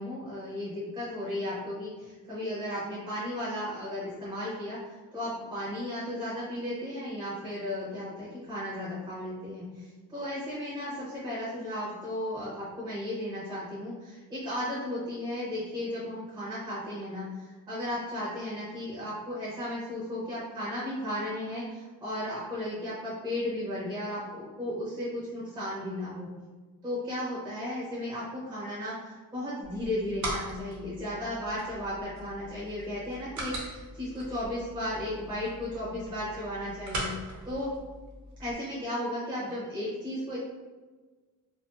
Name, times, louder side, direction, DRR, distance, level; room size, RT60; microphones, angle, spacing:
voice 1, 0.0-4.8 5.1-26.3 26.8-37.1 37.5-37.7 38.4-40.4, left 1 dB, 15° right, -9 dB, 0.6 m, -35 dB
sound 1, 29.6-38.5, right 1 dB, 55° right, 0.7 m, -41 dB
2.4 x 2.4 x 2.2 m, 1.3 s
wide cardioid pair, 175°, 35 cm